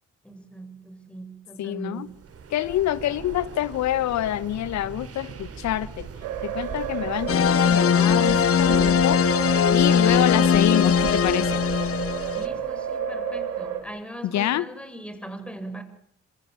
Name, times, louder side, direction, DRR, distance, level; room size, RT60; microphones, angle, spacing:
voice 1, 0.2-2.2 12.3-15.8, right 1 dB, 5° left, 8 dB, 7.8 m, -39 dB
voice 2, 1.6-2.1 2.5-6.1 6.4-11.6 14.2-14.6, left 12 dB, 70° left, 17 dB, 1.6 m, -27 dB
sound 1, 2.1-12.9, right 6 dB, 55° right, 3.8 m, -40 dB
sound 2, 6.2-13.8, right 9 dB, 85° right, 4.4 m, -30 dB
sound 3, 7.3-12.5, left 8 dB, 50° left, 1.4 m, -20 dB
26.5 x 26.0 x 7.3 m, 0.64 s
hypercardioid pair, 50°, 29 cm